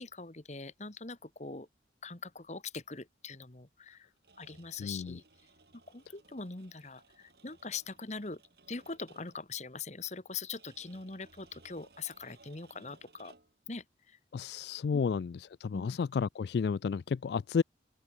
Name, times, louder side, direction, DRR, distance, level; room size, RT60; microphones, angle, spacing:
voice 1, 0.0-1.7 2.0-4.1 4.4-5.2 5.9-8.4 8.7-13.3 13.7-14.2 14.9-15.1 15.7-16.0, left 4 dB, 40° left, 1.5 m, -42 dB
sound 1, 4.2-9.5 10.6-13.7, right 3 dB, 60° right, 6.9 m, -62 dB
voice 2, 4.8-5.2 14.3-17.6, left 5 dB, 65° left, 0.3 m, -32 dB
open air
head